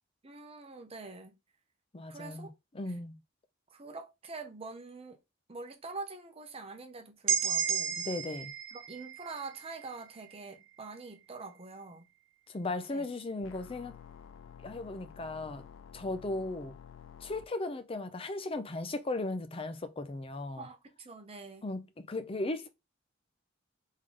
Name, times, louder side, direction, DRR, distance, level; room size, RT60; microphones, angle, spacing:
voice 1, 0.2-1.3 2.1-2.5 3.7-5.2 5.5-8.0 8.7-12.1 12.9-13.1 20.6-21.7, right 3 dB, 30° right, 0.9 m, -45 dB
voice 2, 1.9-2.5 2.7-3.2 8.0-8.5 12.5-14.0 14.6-15.6 15.9-16.7 17.2-20.7 21.6-21.8 22.1-22.7, left 2 dB, 30° left, 0.6 m, -36 dB
sound 1, 7.3-11.1, right 7 dB, 90° right, 0.6 m, -34 dB
sound 2, 13.4-17.4, left 7 dB, 85° left, 0.4 m, -51 dB
3.7 x 3.7 x 3.2 m
head